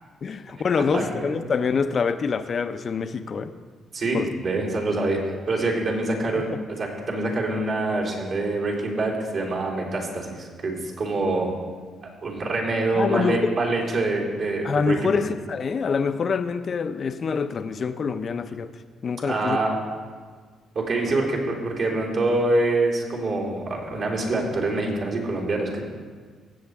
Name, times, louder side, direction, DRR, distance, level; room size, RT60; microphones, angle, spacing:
voice 1, 0.2-3.5 4.1-4.3 6.5-6.6 12.9-13.5 14.6-18.7 19.0-19.6 21.2-21.3, left 5 dB, 50° left, 11 dB, 0.6 m, -25 dB
voice 2, 0.9-1.4 3.9-11.5 12.0-15.1 19.2-19.8 20.7-25.8, right 2 dB, 60° right, -4 dB, 3.7 m, -25 dB
16.5 x 7.9 x 3.6 m, 1.5 s
cardioid pair, 90°, 0 cm